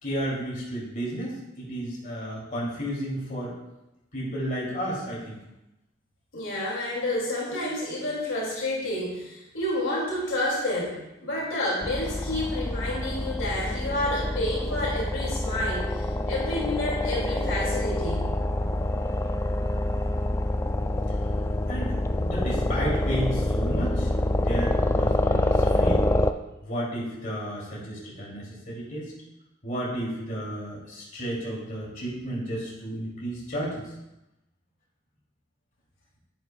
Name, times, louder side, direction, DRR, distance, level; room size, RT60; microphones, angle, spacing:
voice 1, 0.0-3.5 4.1-5.4 21.7-26.0 26.6-29.1 29.6-33.9, equal, 45° left, -5 dB, 2.8 m, -32 dB
voice 2, 6.3-18.4, left 1 dB, 70° left, -4 dB, 2.6 m, -29 dB
sound 1, 11.8-26.3, left 1 dB, 15° left, 0.3 m, -26 dB
10.5 x 8.9 x 2.3 m, 0.92 s
head